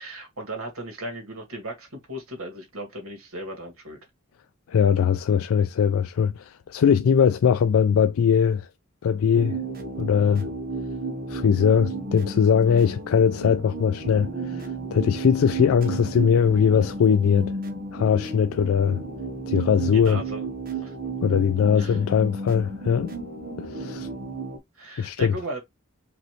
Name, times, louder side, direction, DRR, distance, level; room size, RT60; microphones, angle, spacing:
voice 1, 0.0-4.0 19.9-20.5 20.8-20.9 21.8-22.0 23.9-24.1 24.8-25.6, right 1 dB, 85° right, 2.1 m, -36 dB
voice 2, 4.7-8.7 9.0-9.6 10.0-10.5 11.3-17.5 17.9-19.0 19.5-20.2 21.2-23.1 23.6-24.1 25.0-25.3, left 7 dB, 80° left, 0.3 m, -21 dB
sound 1, 9.3-24.6, right 3 dB, 45° right, 1.1 m, -33 dB
5.1 x 3.0 x 3.1 m
head